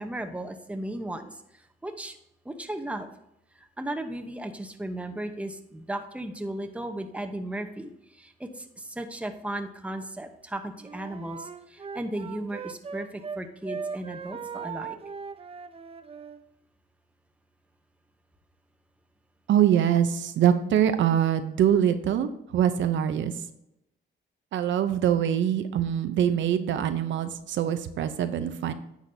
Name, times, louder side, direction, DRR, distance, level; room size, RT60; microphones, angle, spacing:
voice 1, 0.0-2.2 2.4-3.1 3.6-15.0, right 1 dB, 5° right, 5 dB, 0.8 m, -36 dB
Wind instrument woodwind instrument, 10.8-13.4 13.6-16.4, right 6 dB, 30° right, 0.6 m, -38 dB
voice 2, 19.5-23.3 24.5-28.7, right 9 dB, 70° right, 9 dB, 0.7 m, -24 dB
10.0 x 7.0 x 2.7 m, 0.83 s
cardioid pair, 90°, 20 cm